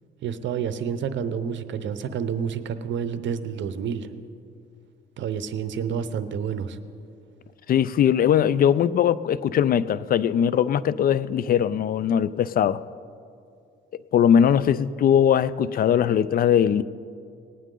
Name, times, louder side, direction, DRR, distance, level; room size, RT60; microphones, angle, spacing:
voice 1, 0.2-4.1 5.2-6.8, right 7 dB, 70° right, 0.7 m, -29 dB
voice 2, 7.7-12.8 14.1-16.8, left 9 dB, 50° left, 0.4 m, -20 dB
18.5 x 9.2 x 3.8 m
cardioid pair, 90°, 20 cm